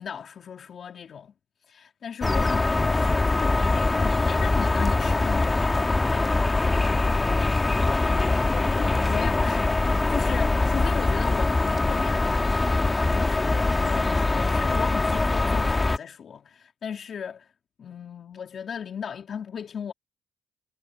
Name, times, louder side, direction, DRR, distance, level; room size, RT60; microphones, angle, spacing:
voice 1, 0.0-1.3 1.7-5.5 9.1-12.6 13.2-17.5 17.8-19.9, left 7 dB, 55° left, 2.8 m, -36 dB
sound 1, 2.2-16.0, left 2 dB, 20° left, 2.1 m, -23 dB
voice 2, 6.9-9.1, left 11 dB, 75° left, 4.7 m, -45 dB
cardioid pair, 90°, 0 cm